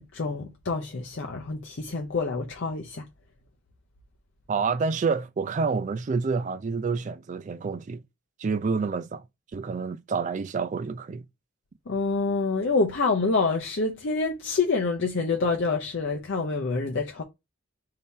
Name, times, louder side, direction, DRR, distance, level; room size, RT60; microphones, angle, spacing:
voice 1, 0.0-3.1 11.9-17.2, left 4 dB, 65° left, 0.6 m, -27 dB
voice 2, 4.5-8.0 8.4-9.2 9.5-11.2, right 4 dB, 40° right, 0.4 m, -28 dB
3.7 x 2.8 x 4.0 m
head